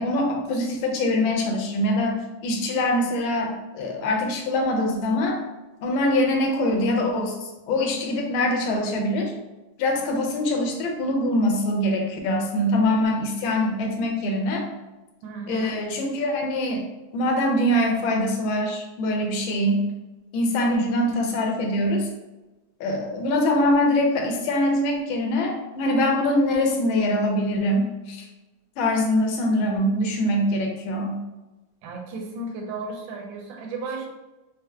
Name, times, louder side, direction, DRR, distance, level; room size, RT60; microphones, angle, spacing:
voice 1, 0.0-5.4 5.8-9.3 9.8-14.6 15.5-16.8 17.1-19.8 20.3-22.1 22.8-28.3 28.8-31.2, left 1 dB, 90° left, 2 dB, 1.5 m, -23 dB
voice 2, 15.2-15.8 31.8-34.1, right 3 dB, 75° right, 1 dB, 1.4 m, -34 dB
4.3 x 2.1 x 3.4 m, 1.1 s
omnidirectional pair, 2.2 m